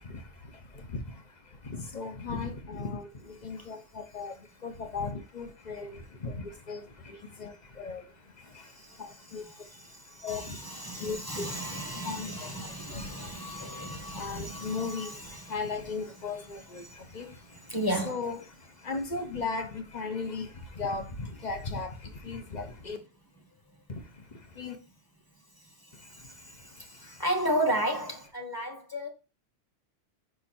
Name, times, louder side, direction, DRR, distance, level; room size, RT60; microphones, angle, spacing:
voice 1, 0.0-11.6 11.9-17.7 18.0-23.0 23.9-24.8 25.9-27.2, left 4 dB, 40° left, 1.1 m, -38 dB
voice 2, 8.6-15.6 16.3-18.2 25.6-29.1, right 1 dB, 20° left, 1.4 m, -35 dB
5.5 x 5.3 x 4.3 m
omnidirectional pair, 1.3 m